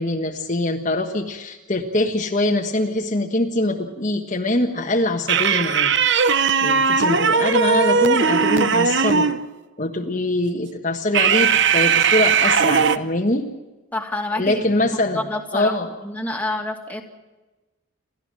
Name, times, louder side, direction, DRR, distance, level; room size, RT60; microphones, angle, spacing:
voice 1, 0.0-5.9 6.6-9.3 9.8-13.5 14.4-15.2 15.5-15.9, left 1 dB, 35° left, 2 dB, 1.5 m, -23 dB
sound 1, 5.3-9.4 11.1-13.0, right 6 dB, 55° right, 0.9 m, -18 dB
voice 2, 13.9-15.8 16.0-17.0, left 2 dB, 10° left, 2 dB, 2.3 m, -28 dB
28.5 x 13.5 x 7.6 m, 1.2 s
head